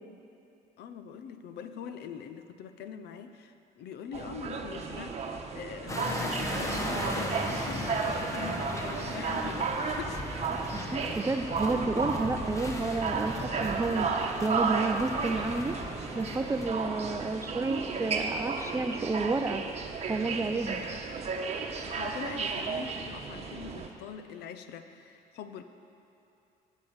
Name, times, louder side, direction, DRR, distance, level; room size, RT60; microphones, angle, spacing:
voice 1, 0.8-10.5 21.8-25.6, left 7 dB, 75° left, 9 dB, 0.8 m, -43 dB
sound 1, 4.1-23.9, right 4 dB, 40° right, 1.1 m, -34 dB
sound 2, 5.9-16.7, left 1 dB, 20° left, 1.3 m, -37 dB
voice 2, 10.5-14.1 14.4-15.7 16.1-19.6 20.1-20.8, right 3 dB, 15° right, 9 dB, 0.5 m, -31 dB
12.0 x 8.6 x 7.2 m, 2.8 s
cardioid pair, 110°, 17 cm